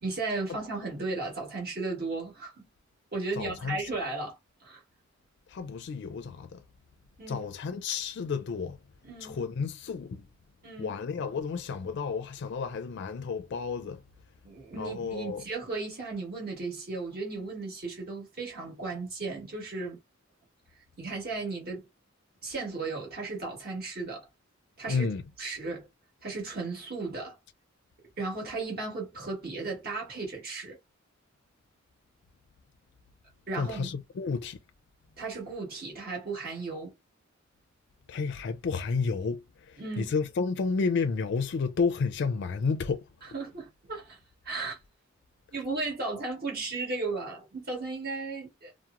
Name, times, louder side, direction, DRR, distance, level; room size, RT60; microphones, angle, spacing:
voice 1, 0.0-2.7 3.1-4.4 4.6-4.8 7.2-7.5 9.0-9.4 10.6-10.9 14.4-20.0 21.0-21.9 22.4-24.3 24.8-25.1 25.4-25.9 26.2-27.4 28.2-30.8 33.5-33.9 35.2-37.0 39.8-40.1 43.2-44.2 44.4-44.8 45.5-48.7, right 3 dB, 50° right, 1.4 m, -35 dB
voice 2, 3.4-3.8 5.5-6.6 7.3-8.8 9.2-10.3 10.8-14.0 14.8-15.4 24.9-25.2 33.6-34.6 38.1-43.0, left 5 dB, 60° left, 0.4 m, -31 dB
2.8 x 2.0 x 2.4 m
head